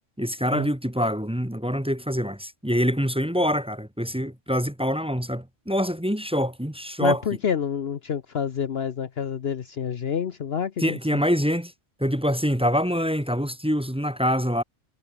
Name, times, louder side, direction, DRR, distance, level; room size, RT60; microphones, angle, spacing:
voice 1, 0.2-7.2 10.8-11.7 12.0-14.6, equal, 5° right, 1.2 m, -25 dB
voice 2, 7.0-11.0, left 7 dB, 55° left, 1.1 m, -28 dB
omnidirectional pair, 1.3 m